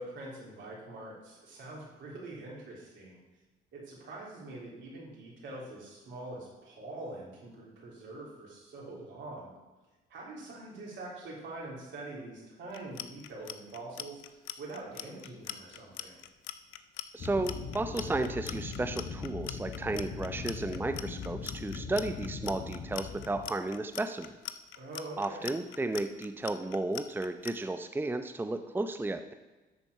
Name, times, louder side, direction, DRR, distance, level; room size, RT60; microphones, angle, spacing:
voice 1, 0.0-3.2 3.7-9.6 10.1-16.2 24.8-25.5, right 2 dB, 70° right, -3 dB, 3.5 m, -44 dB
Clock, 12.7-27.5, left 13 dB, 80° left, 0.6 m, -42 dB
voice 2, 17.1-24.3 25.2-29.3, right 2 dB, 10° right, 8 dB, 0.6 m, -33 dB
sound 1, 17.2-23.5, left 5 dB, 55° left, 1.0 m, -40 dB
12.0 x 4.4 x 5.5 m, 1.2 s
supercardioid pair, 65°, 20 cm